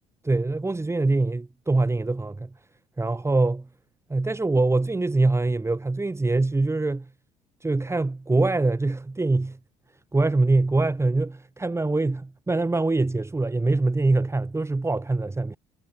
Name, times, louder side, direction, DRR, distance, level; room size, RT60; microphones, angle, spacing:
voice 1, 0.2-2.5 3.0-3.7 4.1-7.1 7.6-9.6 10.1-15.6, right 2 dB, 15° right, 4.8 m, -24 dB
supercardioid pair, 75°, 16 cm